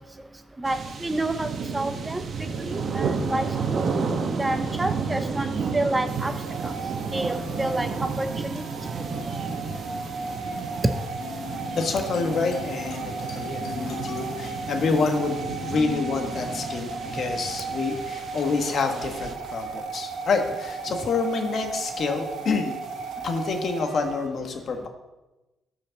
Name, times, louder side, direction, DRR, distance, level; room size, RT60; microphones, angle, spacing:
voice 1, 0.6-2.2 2.6-3.8 4.3-6.3 6.6-6.7 7.1-8.6 10.8-10.9, right 2 dB, 15° right, 8 dB, 0.6 m, -28 dB
sound 1, 0.7-19.3, right 5 dB, 55° right, 1.0 m, -32 dB
sound 2, 6.1-24.3, right 4 dB, 80° right, 1.3 m, -36 dB
sound 3, 11.2-18.1, left 6 dB, 80° left, 1.7 m, -40 dB
voice 2, 11.7-22.7 23.2-24.9, left 4 dB, 55° left, 4 dB, 1.4 m, -27 dB
13.0 x 5.2 x 4.0 m, 1.0 s
cardioid pair, 90°, 0 cm